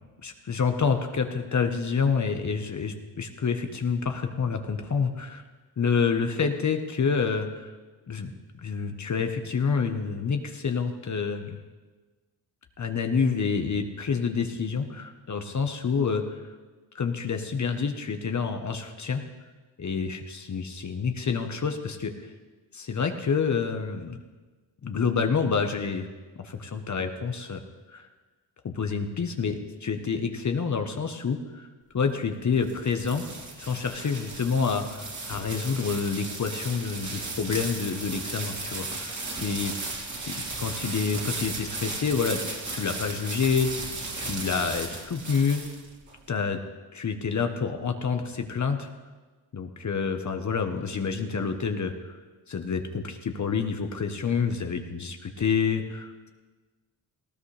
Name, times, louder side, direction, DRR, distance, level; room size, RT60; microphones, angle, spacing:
voice 1, 0.2-5.4 5.8-7.7 8.1-8.3 8.6-11.6 12.8-16.4 16.9-19.2 19.8-22.3 22.7-24.2 24.8-26.1 26.4-27.6 27.9-28.1 28.6-31.7 31.9-33.2 33.6-39.1 39.4-39.7 40.2-43.7 44.1-45.6 46.3-46.6 46.9-48.9 49.5-52.1 52.5-56.3, left 5 dB, 40° left, 6 dB, 1.1 m, -28 dB
sound 1, 32.3-46.1, right 3 dB, 40° right, 3.0 m, -35 dB
18.5 x 16.0 x 3.3 m, 1.3 s
cardioid pair, 95°, 46 cm